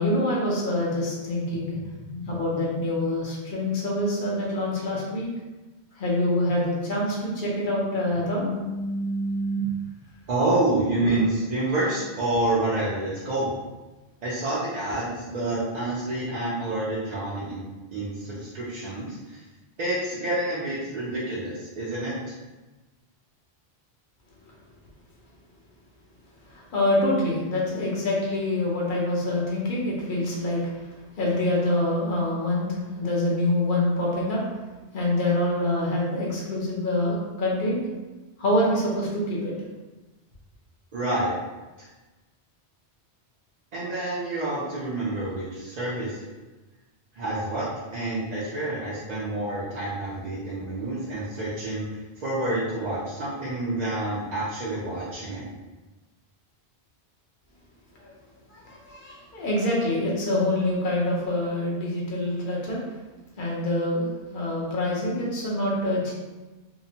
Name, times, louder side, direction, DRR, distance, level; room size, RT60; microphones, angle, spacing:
voice 1, 0.0-5.3 6.0-9.7 26.7-30.6 31.2-32.7 33.0-34.4 34.9-37.9 38.4-39.5 58.0-58.1 58.7-62.8 63.4-64.1 64.3-66.1, left 1 dB, 55° left, -4 dB, 0.8 m, -26 dB
voice 2, 10.3-13.5 14.2-17.6 17.9-19.4 19.8-22.4 40.9-41.4 41.8-41.9 43.7-46.2 47.2-51.9 52.2-55.5, right 2 dB, 50° right, -8 dB, 0.5 m, -28 dB
2.8 x 2.1 x 2.7 m, 1.2 s
omnidirectional pair, 1.1 m